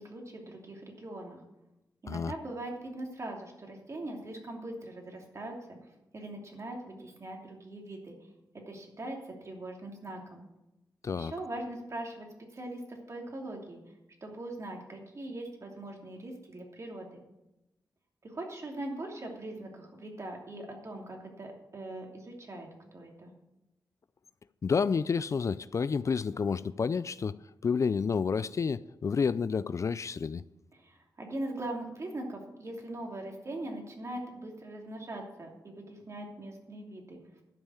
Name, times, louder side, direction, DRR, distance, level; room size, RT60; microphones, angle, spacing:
voice 1, 0.0-1.4 2.0-5.6 5.8-8.1 8.7-10.4 11.1-12.3 12.5-13.8 14.2-17.2 18.2-23.3 30.7-37.4, right 1 dB, 45° right, 2.9 m, -41 dB
voice 2, 24.6-27.4 27.6-30.4, left 5 dB, 45° left, 0.4 m, -29 dB
12.0 x 5.5 x 8.7 m
cardioid pair, 65°, 7 cm